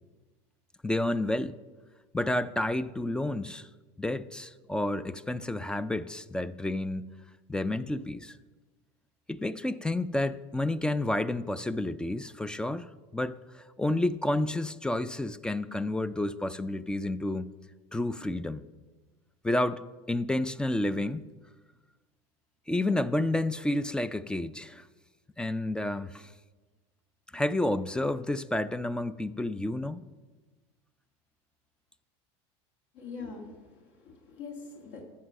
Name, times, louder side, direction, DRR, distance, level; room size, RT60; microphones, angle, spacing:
voice 1, 0.8-1.6 2.1-3.7 4.0-7.2 7.5-8.4 9.3-17.5 17.9-18.6 19.4-21.3 22.7-24.8 25.4-26.3 27.3-30.1, left 1 dB, 5° left, 0.3 m, -30 dB
voice 2, 32.9-35.0, left 4 dB, 70° left, 2.0 m, -43 dB
14.0 x 7.4 x 6.3 m
supercardioid pair, 130°, 14 cm